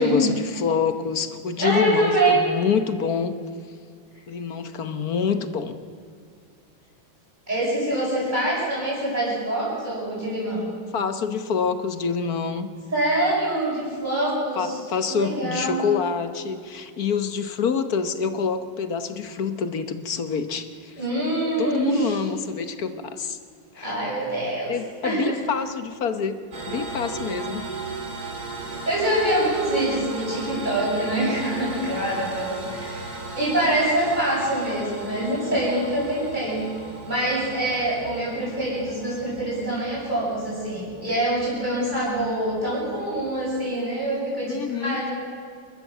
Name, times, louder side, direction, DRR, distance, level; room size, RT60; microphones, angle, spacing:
voice 1, 0.0-3.3 4.3-5.7 10.9-12.7 14.6-21.0 21.6-23.4 23.7-24.0 24.7-26.4 26.6-27.6 44.5-45.1, left 6 dB, 55° left, 10 dB, 1.4 m, -26 dB
voice 2, 1.6-2.4 7.5-10.7 12.9-14.8 15.1-15.8 21.0-22.2 23.8-24.7 25.0-25.4 28.7-36.6 37.1-45.1, right 1 dB, 20° right, -12 dB, 7.8 m, -25 dB
sound 1, 26.5-43.6, right 3 dB, 45° right, 3.4 m, -37 dB
29.0 x 13.0 x 7.4 m, 2.2 s
omnidirectional pair, 2.2 m